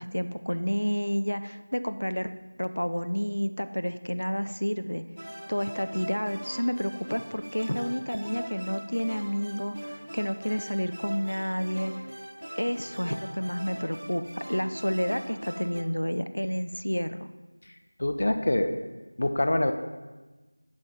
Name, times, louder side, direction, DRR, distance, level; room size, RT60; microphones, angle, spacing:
voice 1, 0.0-2.3 2.6-5.0 5.5-11.9 12.6-17.3, equal, 90° left, 10 dB, 0.5 m, -30 dB
sound 1, 5.2-15.8, equal, 65° right, 0.9 m, -41 dB
voice 2, 17.6-18.7 19.2-19.7, left 1 dB, 35° left, 7 dB, 0.4 m, -26 dB
8.9 x 5.4 x 4.4 m, 1.2 s
figure-of-eight pair, 175°, 0 cm